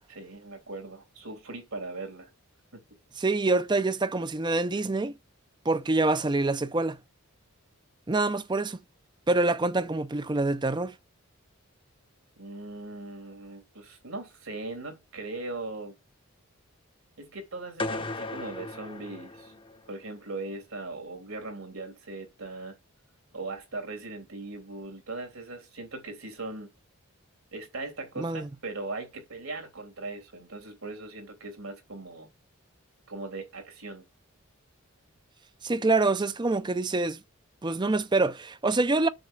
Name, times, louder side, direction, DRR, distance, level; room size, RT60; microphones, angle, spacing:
voice 1, 0.1-2.3 2.7-2.8 12.4-15.9 17.2-19.5 19.9-22.7 23.3-26.7 27.5-32.3 33.1-34.0, right 2 dB, 75° right, 3.2 m, -39 dB
voice 2, 3.2-5.1 5.7-7.0 8.1-8.8 9.3-11.0 28.2-28.5 35.6-37.2 37.6-39.1, right 2 dB, 20° right, 0.5 m, -26 dB
sound 1, 17.8-19.9, left 2 dB, 25° left, 0.7 m, -36 dB
7.7 x 6.7 x 6.4 m
head